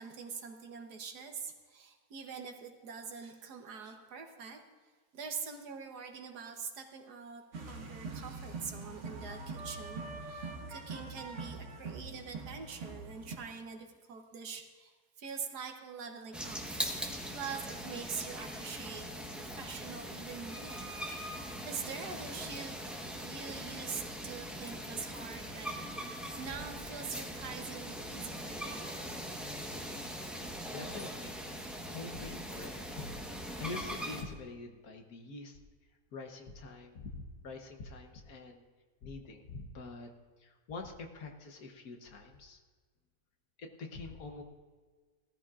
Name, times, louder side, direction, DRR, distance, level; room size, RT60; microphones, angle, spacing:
voice 1, 0.0-4.6 5.1-7.4 7.7-16.6 17.3-21.4 21.7-22.8 23.2-25.8 26.4-29.2, right 6 dB, 70° right, 4 dB, 1.6 m, -44 dB
sound 1, 7.5-13.4, right 3 dB, 50° right, 1.4 m, -43 dB
sound 2, 16.3-34.2, equal, ahead, 0.8 m, -41 dB
voice 2, 30.2-35.6 36.1-38.6 39.0-40.1 40.4-42.6 43.6-44.4, left 3 dB, 65° left, 4 dB, 1.5 m, -46 dB
18.0 x 13.5 x 2.5 m, 1.5 s
omnidirectional pair, 1.8 m